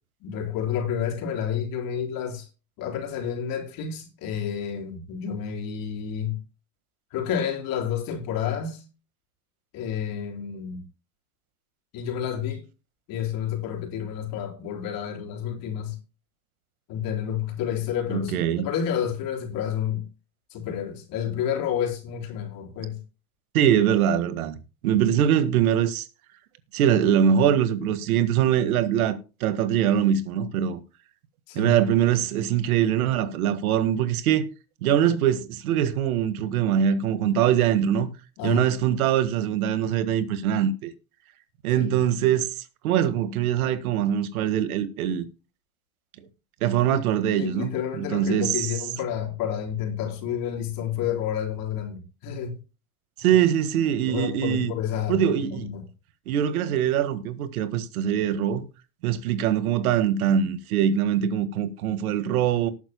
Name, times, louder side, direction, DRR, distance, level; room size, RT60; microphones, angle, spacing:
voice 1, 0.2-2.5 2.8-6.4 7.1-8.8 9.7-10.9 11.9-12.7 13.1-16.0 16.9-20.0 20.5-23.0 31.5-31.9 38.4-38.7 41.8-42.0 46.9-47.0 47.3-52.6 54.1-55.8, left 8 dB, 55° left, 4.0 m, -30 dB
voice 2, 18.1-18.7 23.5-24.6 24.8-26.1 26.7-30.8 31.6-34.5 34.8-38.1 38.4-40.9 41.6-42.5 42.8-45.2 46.6-48.7 53.2-54.7 55.1-55.7 56.3-58.6 59.0-62.7, right 9 dB, 90° right, 1.7 m, -23 dB
19.0 x 9.1 x 2.2 m
supercardioid pair, 125°, 42 cm